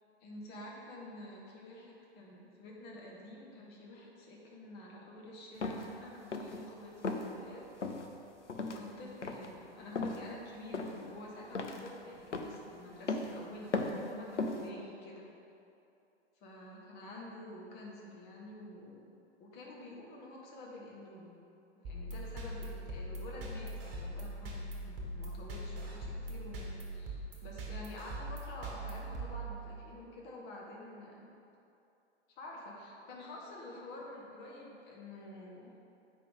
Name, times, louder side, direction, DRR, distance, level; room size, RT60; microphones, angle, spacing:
voice 1, 0.2-7.7 8.6-15.3 16.4-19.1 19.4-21.3 21.7-31.3 32.3-35.7, left 1 dB, 30° left, -2 dB, 1.5 m, -49 dB
sound 1, 5.6-5.9 6.3-6.6 7.0-7.3 7.8-8.1 8.5-8.8 9.2-9.5 10.0-10.2 10.7-11.1 11.6-11.9 12.3-12.6 13.1-13.3 13.7-14.1 14.4-14.7, left 3 dB, 85° left, 0.7 m, -36 dB
sound 2, 21.8-30.0, right 1 dB, 35° right, 1.4 m, -42 dB
8.3 x 5.3 x 3.6 m, 2.7 s
figure-of-eight pair, 110°, 35 cm